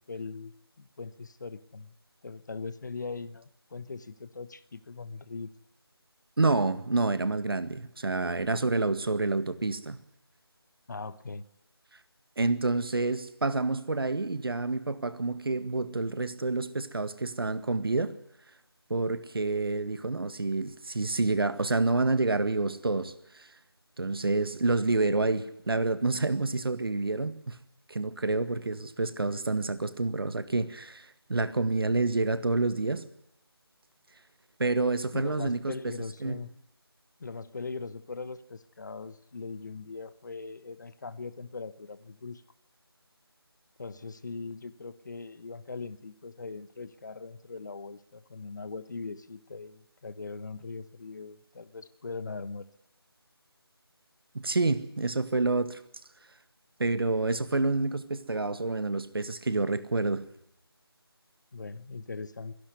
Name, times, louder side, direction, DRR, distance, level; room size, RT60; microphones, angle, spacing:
voice 1, 0.1-1.9 2.2-5.5 10.9-11.4 35.1-36.5 37.2-42.4 43.8-52.7 61.5-62.5, left 4 dB, 45° left, 16 dB, 1.1 m, -40 dB
voice 2, 6.4-10.0 12.4-18.1 18.9-23.5 24.0-27.6 27.9-33.1 34.6-35.9 36.2-36.4 54.3-55.8 56.8-60.2, right 3 dB, 65° right, 12 dB, 1.8 m, -28 dB
24.0 x 11.5 x 9.5 m, 0.82 s
figure-of-eight pair, 165°, 13 cm